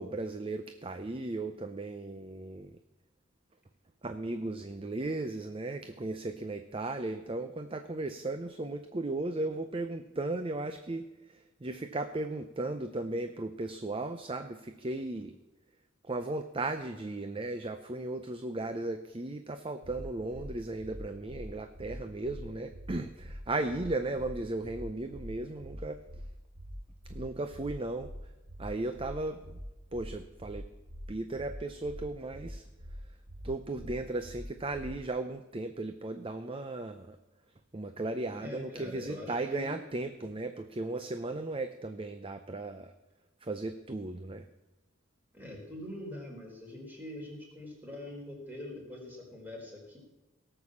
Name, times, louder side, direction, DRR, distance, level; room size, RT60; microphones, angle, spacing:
voice 1, 0.0-2.7 4.0-15.4 16.0-26.0 27.1-28.1 28.6-29.4 29.9-30.7 31.1-32.7 33.4-37.2 37.7-42.9 43.4-44.5, right 2 dB, 25° right, 8 dB, 0.6 m, -36 dB
sound 1, 19.8-20.0 20.3-20.5 20.8-20.9 21.3-21.4 21.7-21.9 22.2-22.4 22.7-22.9 23.2-23.3 23.7-23.8 24.1-24.3 24.6-24.8 25.1-25.3 25.6-25.7 26.1-26.2 26.5-26.7 27.0-27.2 27.5-27.7 28.0-28.1 28.5-28.6 28.9-29.1 29.4-29.6 29.9-30.1 30.4-30.5 30.9-31.0 31.3-31.5 31.8-32.0 32.3-32.5 32.8-32.9 33.3-33.4 33.7-33.9 34.2-34.4 34.7-34.9, right 1 dB, 55° right, 3.2 m, -47 dB
voice 2, 38.3-39.7 45.3-50.0, left 1 dB, 10° right, -1 dB, 3.9 m, -43 dB
17.5 x 6.7 x 7.2 m, 1.1 s
head